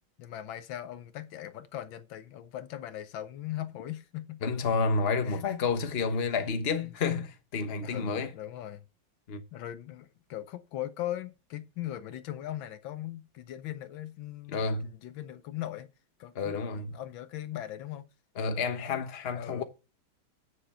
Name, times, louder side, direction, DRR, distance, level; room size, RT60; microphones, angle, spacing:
voice 1, 0.2-4.4 5.2-5.5 6.7-6.9 7.8-8.8 9.5-15.9 16.2-18.1 19.3-19.6, left 12 dB, 75° left, 1.4 m, -39 dB
voice 2, 4.4-8.3 9.3-9.4 14.5-14.9 16.3-17.0 18.4-19.6, left 4 dB, 35° left, 1.2 m, -30 dB
9.3 x 6.8 x 5.5 m
omnidirectional pair, 2.2 m